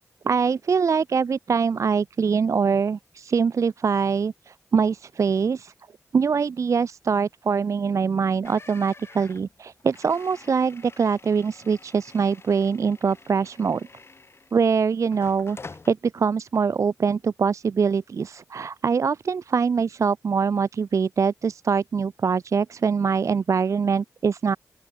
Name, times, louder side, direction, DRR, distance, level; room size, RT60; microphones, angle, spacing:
voice 1, 0.2-5.7 6.1-13.9 14.5-15.6 15.9-24.6, right 6 dB, 55° right, 0.4 m, -23 dB
sound 1, 8.4-14.7 15.1-15.9, left 3 dB, 40° left, 4.1 m, -47 dB
open air
cardioid pair, 65°, 6 cm